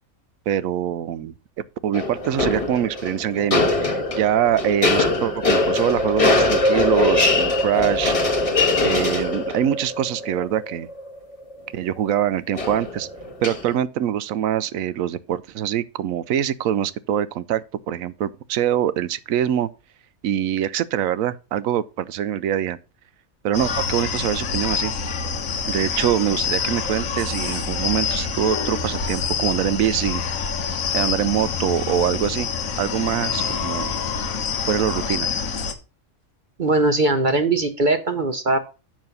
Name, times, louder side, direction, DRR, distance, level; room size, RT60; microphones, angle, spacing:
voice 1, 0.5-1.3 1.8-8.1 8.8-10.9 11.7-13.1 13.4-19.7 20.2-22.8 23.4-24.9 25.7-30.2 30.9-32.5 32.8-34.0 34.7-35.3, right 10 dB, 75° right, 1.0 m, -24 dB
sound 1, 1.9-11.7 12.5-13.7, left 2 dB, 25° left, 1.3 m, -22 dB
sound 2, 23.5-35.7, left 6 dB, 70° left, 1.4 m, -26 dB
voice 2, 36.6-38.6, right 2 dB, 40° right, 0.8 m, -20 dB
7.5 x 6.2 x 5.3 m
omnidirectional pair, 1.5 m